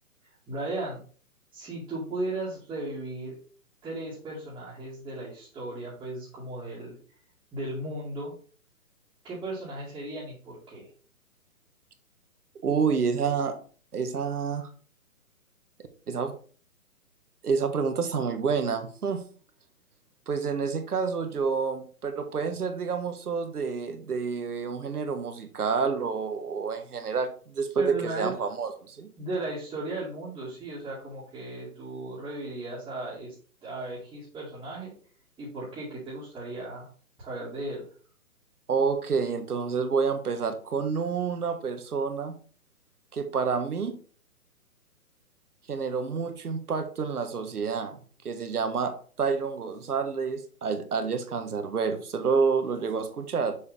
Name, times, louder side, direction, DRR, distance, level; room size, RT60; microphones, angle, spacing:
voice 1, 0.5-1.0 1.5-3.4 3.8-7.0 7.5-8.3 9.2-10.9 27.8-28.3 29.2-33.3 33.6-34.9 35.4-36.9 37.2-37.9, right 2 dB, 10° right, -10 dB, 2.1 m, -36 dB
voice 2, 12.6-13.6 13.9-14.7 16.1-16.4 17.4-19.2 20.3-29.1 38.7-42.3 43.1-43.9 45.7-48.0 48.2-53.6, right 5 dB, 85° right, 7 dB, 1.5 m, -28 dB
6.6 x 5.4 x 3.5 m, 0.41 s
hypercardioid pair, 150°, 44 cm